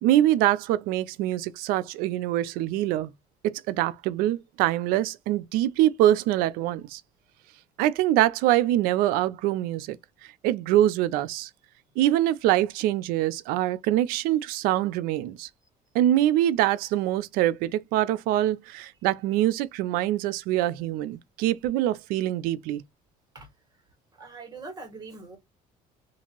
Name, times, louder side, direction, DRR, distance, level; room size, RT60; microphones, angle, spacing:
voice 1, 0.0-3.1 3.4-7.0 7.8-10.0 10.2-11.5 12.0-15.5 15.9-22.8, right 13 dB, 80° right, 0.4 m, -24 dB
voice 2, 24.2-25.4, right 3 dB, 25° right, 1.6 m, -42 dB
2.8 x 2.5 x 2.9 m
cardioid pair, 115°, 15 cm